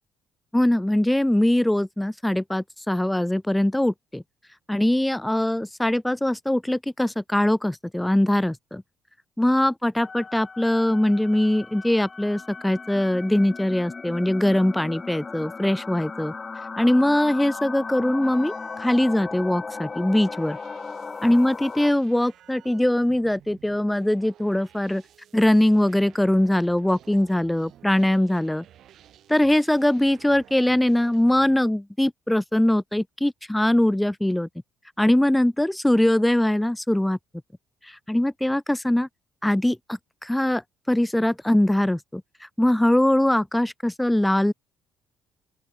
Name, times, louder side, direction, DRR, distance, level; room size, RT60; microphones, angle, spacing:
voice 1, 0.5-4.2 4.7-8.8 9.4-16.3 16.8-18.5 18.8-20.6 21.2-25.0 25.3-28.6 29.3-34.5 35.0-37.2 38.1-39.1 39.4-40.6 40.9-42.2 42.6-44.5, left 1 dB, 5° left, 0.7 m, -22 dB
sound 1, 10.0-21.9, left 4 dB, 30° left, 1.2 m, -37 dB
sound 2, 18.2-31.6, right 11 dB, 70° right, 6.8 m, -53 dB
open air
supercardioid pair, 75°, 0 cm